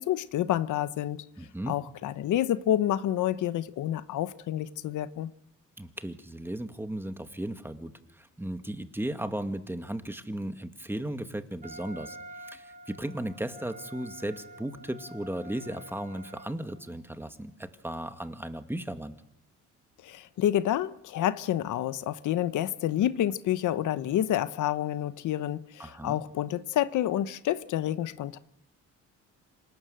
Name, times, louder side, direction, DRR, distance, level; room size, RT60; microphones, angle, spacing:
voice 1, 0.0-1.2 1.7-5.3 20.0-28.4, left 12 dB, 80° left, 1.0 m, -28 dB
voice 2, 1.4-1.8 5.8-19.1 25.8-26.2, right 1 dB, 5° right, 2.1 m, -36 dB
Wind instrument woodwind instrument, 11.6-16.9, right 1 dB, 25° right, 5.5 m, -48 dB
26.5 x 18.5 x 7.8 m
cardioid pair, 90°, 30 cm